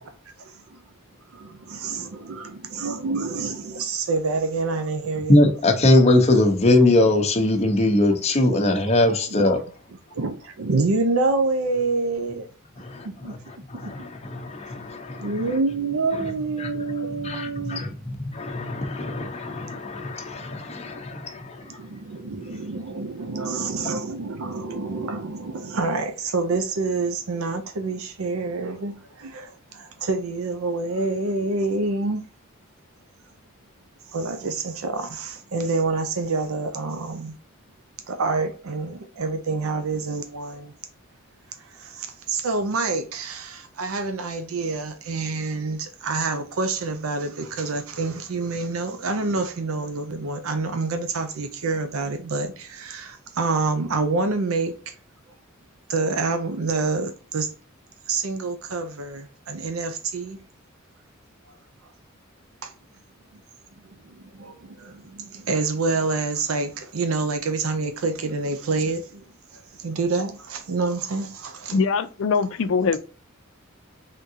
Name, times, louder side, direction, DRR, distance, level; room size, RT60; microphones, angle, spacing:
voice 1, 0.4-0.8 1.3-5.4 8.5-8.6 9.3-9.5 10.1-12.5 13.0-13.3 13.8-14.1 15.2-17.8 21.6-32.2 34.1-37.3 38.1-40.7 41.6-54.9 55.9-57.5 58.1-60.4 62.6-62.7 64.0-69.2 69.5-71.8, right 3 dB, 90° right, 0.6 m, -27 dB
voice 2, 5.3-9.6 12.8-13.1 13.7-15.3 16.6-16.7 17.2-21.6, left 2 dB, 30° left, 0.8 m, -21 dB
voice 3, 71.7-73.0, left 5 dB, 65° left, 0.4 m, -22 dB
3.8 x 3.6 x 2.7 m
head